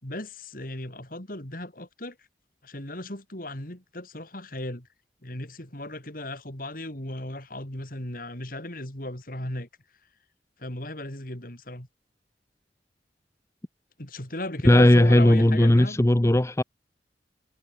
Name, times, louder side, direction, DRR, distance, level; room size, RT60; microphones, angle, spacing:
voice 1, 0.0-2.3 2.6-4.9 5.2-9.7 10.6-11.9 14.0-16.0, left 1 dB, 50° left, 4.2 m, -36 dB
voice 2, 14.6-16.6, left 1 dB, 15° left, 0.6 m, -17 dB
head